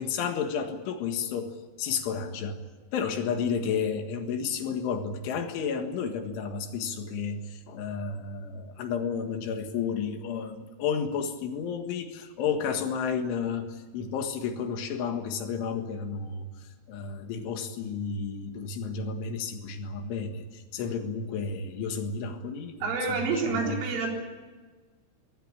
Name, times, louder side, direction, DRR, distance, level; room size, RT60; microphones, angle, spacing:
voice 1, 0.0-1.5 1.8-2.6 2.9-16.5 16.9-22.8 23.1-23.8, left 6 dB, 70° left, 6 dB, 4.0 m, -32 dB
voice 2, 22.8-24.2, right 4 dB, 70° right, 0 dB, 6.3 m, -28 dB
22.0 x 18.5 x 10.0 m, 1.4 s
omnidirectional pair, 6.0 m